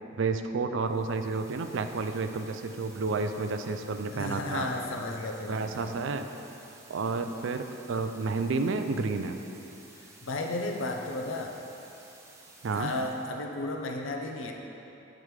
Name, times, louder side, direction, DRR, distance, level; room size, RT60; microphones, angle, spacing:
voice 1, 0.2-4.7 5.5-6.3 6.9-9.4 12.6-13.0, right 4 dB, 70° right, 7 dB, 0.4 m, -30 dB
sound 1, 0.8-13.4, right 2 dB, 15° right, 0.5 m, -54 dB
voice 2, 4.1-5.9 10.2-11.5 12.7-14.5, left 2 dB, 80° left, 2 dB, 0.6 m, -33 dB
7.6 x 5.0 x 4.7 m, 2.9 s
head